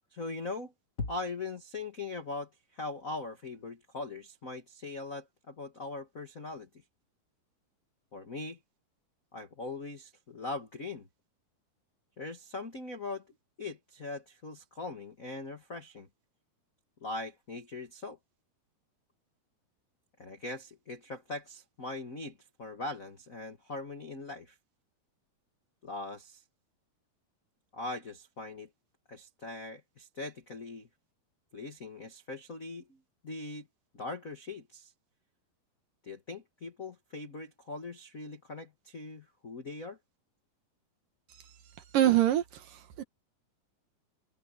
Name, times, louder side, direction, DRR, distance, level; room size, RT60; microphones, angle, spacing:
voice 1, 0.1-0.7 1.0-6.7 8.1-8.6 9.3-11.1 12.2-13.2 13.6-16.1 17.0-18.2 20.2-24.5 25.8-26.4 27.7-28.7 29.1-30.9 31.5-33.0 33.2-33.7 33.9-34.9 36.0-40.0, left 3 dB, 50° left, 0.9 m, -41 dB
voice 2, 41.9-43.0, right 12 dB, 65° right, 2.9 m, -25 dB
omnidirectional pair, 4.4 m